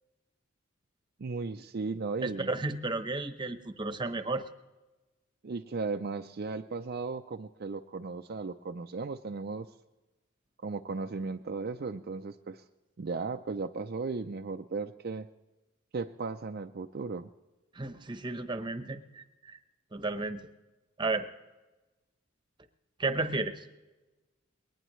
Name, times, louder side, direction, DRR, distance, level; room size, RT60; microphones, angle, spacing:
voice 1, 1.2-2.5 5.4-9.7 10.6-12.6 13.0-15.3 15.9-17.3, right 4 dB, 50° right, 5 dB, 0.5 m, -36 dB
voice 2, 2.2-4.5 17.7-19.6 19.9-20.4 21.0-21.3 23.0-23.6, right 3 dB, 20° right, 9 dB, 0.9 m, -33 dB
22.0 x 19.0 x 3.1 m, 1.1 s
head